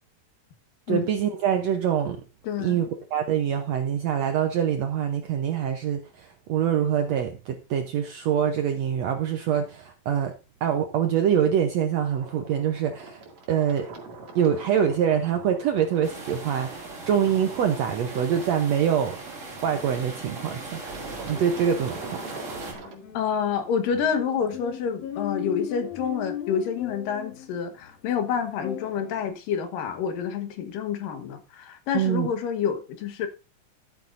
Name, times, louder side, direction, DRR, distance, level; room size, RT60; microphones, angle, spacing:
voice 1, 0.9-2.2 2.6-2.9 3.1-10.3 10.6-13.9 14.4-19.2 19.6-20.9 21.3-22.2 31.9-32.3, right 8 dB, 75° right, 1.6 m, -25 dB
voice 2, 2.4-2.8 23.1-33.3, left 7 dB, 75° left, 2.9 m, -28 dB
sound 1, 12.1-22.9, right 3 dB, 55° right, 3.3 m, -43 dB
sound 2, 14.8-29.3, left 10 dB, 60° left, 2.1 m, -41 dB
sound 3, 16.0-22.7, right 3 dB, 25° right, 2.1 m, -39 dB
14.5 x 9.0 x 2.6 m
omnidirectional pair, 4.0 m